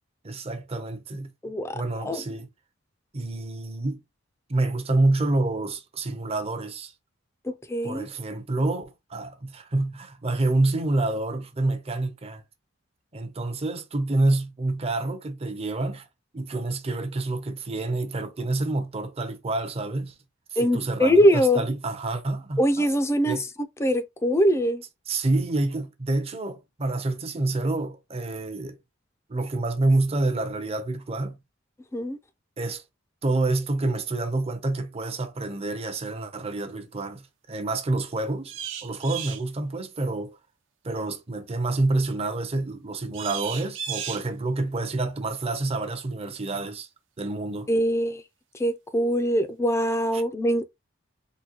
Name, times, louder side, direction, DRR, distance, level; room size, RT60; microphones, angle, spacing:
voice 1, 0.2-1.3 1.7-2.5 3.1-4.0 4.5-6.9 7.8-12.4 13.1-16.1 16.3-20.1 20.6-22.9 23.3-23.4 25.1-28.8 29.3-31.4 32.6-32.8 33.2-40.4 40.8-46.9 47.2-47.7 50.1-50.2, right 2 dB, 30° right, 0.6 m, -28 dB
voice 2, 1.4-2.2 7.4-8.1 20.6-21.6 22.6-23.5 23.8-24.8 31.9-32.2 47.7-48.2 48.5-50.6, equal, 15° left, 0.4 m, -23 dB
sound 1, 38.5-39.4 43.1-44.3, right 9 dB, 70° right, 0.6 m, -34 dB
3.8 x 2.2 x 2.8 m
head